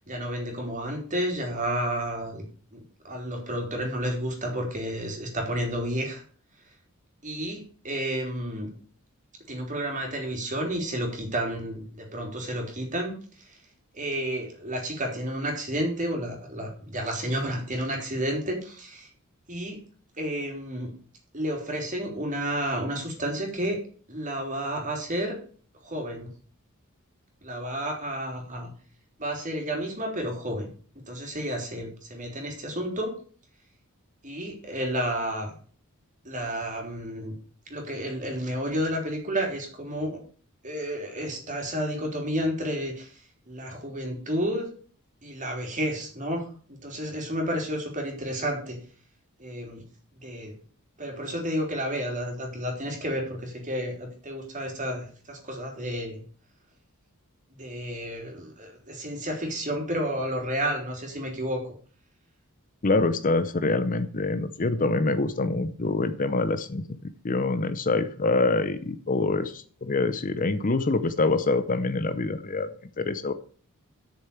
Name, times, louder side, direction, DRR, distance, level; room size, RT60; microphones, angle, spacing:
voice 1, 0.1-2.4 2.7-6.2 7.2-8.7 9.5-13.1 13.4-13.6 13.9-19.1 19.5-19.8 20.2-20.9 21.3-23.8 24.1-25.4 25.8-26.3 27.4-28.7 29.2-30.7 31.1-33.1 34.2-35.5 36.3-37.3 37.7-40.2 40.6-43.2 43.5-44.7 45.2-48.8 49.4-49.8 50.2-50.5 51.0-56.2 57.6-61.6, equal, 35° right, 1 dB, 3.4 m, -31 dB
voice 2, 62.8-66.8 67.2-69.5 69.8-72.7 73.0-73.3, left 3 dB, 40° left, 12 dB, 0.7 m, -25 dB
8.3 x 6.8 x 7.1 m, 0.44 s
head